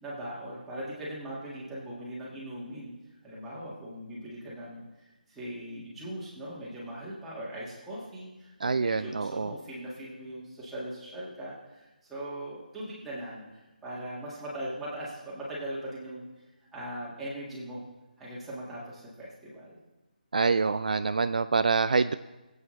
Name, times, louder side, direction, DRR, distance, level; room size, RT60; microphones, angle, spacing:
voice 1, 0.0-2.9 3.2-4.8 5.3-16.3 16.7-17.8 18.2-19.8, right 1 dB, 5° right, -8 dB, 1.8 m, -40 dB
voice 2, 8.6-9.5 20.3-22.2, right 4 dB, 55° right, 11 dB, 0.4 m, -26 dB
21.0 x 8.2 x 3.2 m, 1.1 s
figure-of-eight pair, 175°, 5 cm